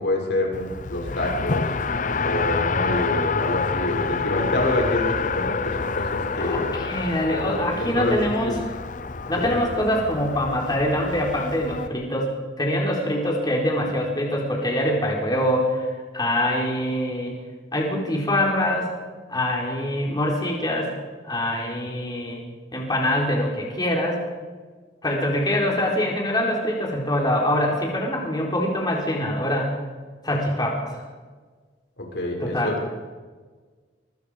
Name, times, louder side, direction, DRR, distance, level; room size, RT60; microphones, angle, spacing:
voice 1, 0.0-1.6 2.2-6.7 7.4-7.6 7.9-8.6 9.5-9.6 32.0-32.8, left 1 dB, 85° left, -1 dB, 6.4 m, -26 dB
Race car auto racing, 0.5-11.9, left 4 dB, 45° left, 0.8 m, -28 dB
voice 2, 6.4-8.6 9.3-15.9 16.1-17.3 17.7-18.9 19.3-20.9 21.2-22.4 22.7-24.2 25.0-29.7 30.2-30.9 32.4-32.8, left 1 dB, 25° left, -1 dB, 4.5 m, -24 dB
25.0 x 24.5 x 5.2 m, 1.5 s
head